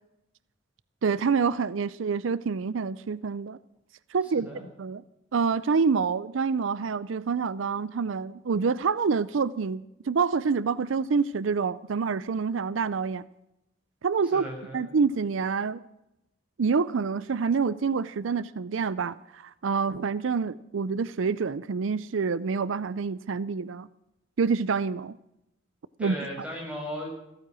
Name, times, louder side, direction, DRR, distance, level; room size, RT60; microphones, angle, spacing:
voice 1, 1.0-3.6 4.1-4.5 4.8-5.0 5.3-13.2 14.0-14.5 14.7-15.8 16.6-23.9 24.4-25.2 26.0-26.2, right 5 dB, 75° right, 0.5 m, -27 dB
voice 2, 14.3-14.8 26.0-27.1, equal, 5° right, 5.8 m, -36 dB
15.0 x 13.5 x 6.1 m
head